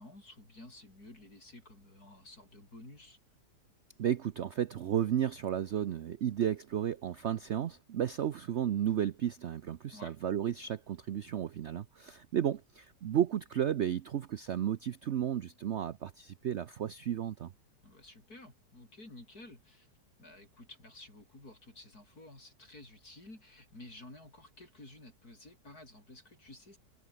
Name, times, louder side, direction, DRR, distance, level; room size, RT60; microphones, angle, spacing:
voice 1, 0.0-3.2 9.9-10.2 17.8-19.9 20.2-26.8, left 2 dB, 60° left, 8.6 m, -53 dB
voice 2, 4.0-17.5, right 10 dB, 60° right, 0.7 m, -33 dB
omnidirectional pair, 1.8 m